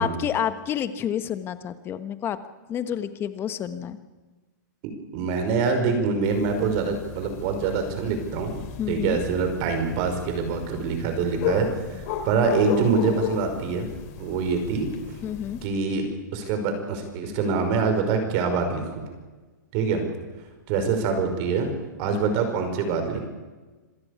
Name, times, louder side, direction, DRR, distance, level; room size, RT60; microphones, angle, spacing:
voice 1, 0.0-2.4 2.7-4.0 8.8-9.2 15.2-15.6 22.1-22.2, left 9 dB, 20° left, 11 dB, 1.3 m, -29 dB
voice 2, 5.1-8.6 8.9-11.7 12.0-13.9 14.2-14.9 15.6-19.0 19.7-20.0 20.7-21.7 22.0-23.2, right 5 dB, 40° right, 6 dB, 5.2 m, -25 dB
sound 1, 6.2-15.7, left 7 dB, 45° left, 3.5 m, -34 dB
26.5 x 16.0 x 8.3 m, 1.3 s
hypercardioid pair, 145°, 10 cm